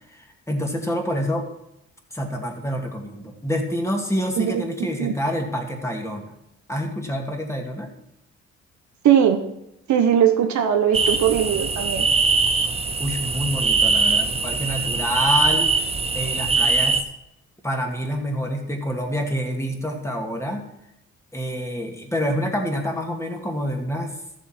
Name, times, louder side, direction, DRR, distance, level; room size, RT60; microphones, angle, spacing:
voice 1, 0.1-1.5 2.1-6.3 6.7-7.9 13.0-15.7 16.1-17.0 17.6-20.7 21.3-24.1, equal, 10° left, 1 dB, 2.1 m, -27 dB
voice 2, 9.0-9.5 9.9-12.1, right 9 dB, 70° right, 7 dB, 1.0 m, -19 dB
sound 1, 10.9-17.0, right 4 dB, 20° right, 0.8 m, -22 dB
13.5 x 7.2 x 4.4 m, 0.83 s
cardioid pair, 90°, 30 cm